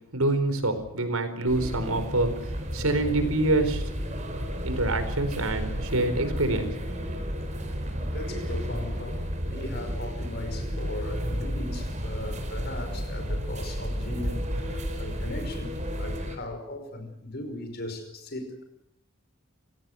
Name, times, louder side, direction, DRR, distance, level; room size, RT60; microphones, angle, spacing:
voice 1, 0.1-2.3 2.7-3.8 4.6-6.7 7.0-7.1, right 2 dB, 85° right, 4.6 m, -26 dB
sound 1, 1.5-16.4, equal, 35° right, 4.6 m, -32 dB
voice 2, 8.0-18.6, left 1 dB, 50° left, 5.4 m, -38 dB
27.5 x 17.5 x 7.9 m
head